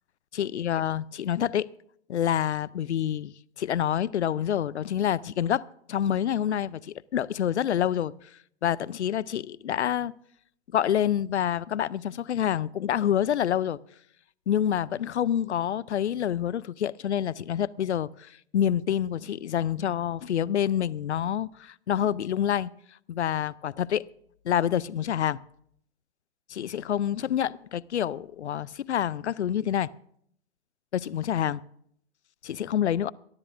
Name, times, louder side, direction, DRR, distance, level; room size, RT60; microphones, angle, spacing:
voice 1, 0.3-1.7 2.1-8.1 8.6-10.1 10.7-13.8 14.5-22.7 23.1-24.1 24.4-25.4 26.5-29.9 30.9-31.6 32.4-33.1, left 10 dB, 80° left, 0.5 m, -27 dB
24.5 x 12.5 x 2.5 m
hypercardioid pair, 125°, 33 cm